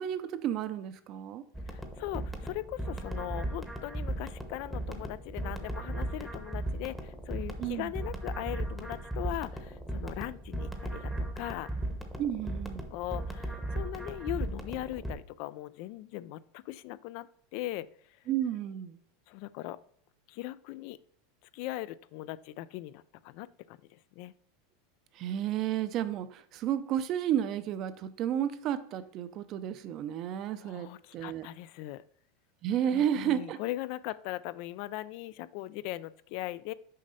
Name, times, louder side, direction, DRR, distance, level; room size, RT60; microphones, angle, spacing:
voice 1, 0.0-1.4 7.6-7.9 12.2-12.9 18.3-19.0 25.1-31.5 32.6-33.6, right 10 dB, 40° right, 12 dB, 0.6 m, -32 dB
sound 1, 1.5-15.1, right 1 dB, ahead, 0.9 m, -37 dB
voice 2, 1.7-11.7 12.9-17.9 19.3-19.8 20.3-21.0 21.5-24.3 30.6-32.0 32.9-36.7, left 16 dB, 55° left, 17 dB, 0.3 m, -39 dB
6.4 x 5.3 x 4.1 m, 0.62 s
supercardioid pair, 145°, 0 cm